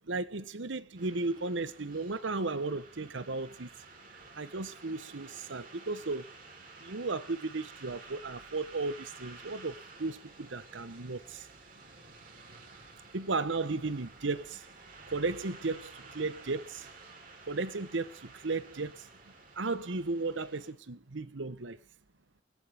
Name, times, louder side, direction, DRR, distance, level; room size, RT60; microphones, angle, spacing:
voice 1, 0.1-3.7 4.1-6.3 6.8-11.5 13.1-14.7 15.1-16.9 17.5-19.1 19.5-21.8, right 3 dB, 75° right, 1.0 m, -35 dB
sound 1, 1.0-20.7, right 3 dB, 45° right, 3.7 m, -52 dB
21.0 x 9.2 x 3.5 m
head